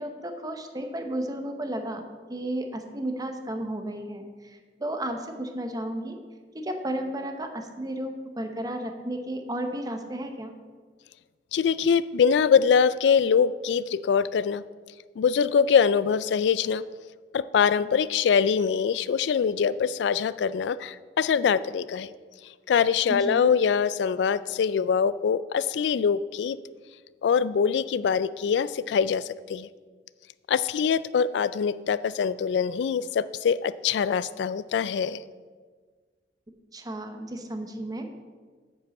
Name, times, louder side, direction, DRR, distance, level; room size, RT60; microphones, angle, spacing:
voice 1, 0.0-6.2 6.5-10.5 23.1-23.5 36.7-38.1, right 1 dB, 20° right, 5 dB, 0.9 m, -33 dB
voice 2, 11.5-14.6 15.2-16.8 17.3-22.1 22.7-26.6 27.2-29.2 29.5-29.7 30.5-35.2, left 6 dB, 70° left, 16 dB, 0.3 m, -23 dB
9.4 x 5.3 x 7.1 m, 1.5 s
head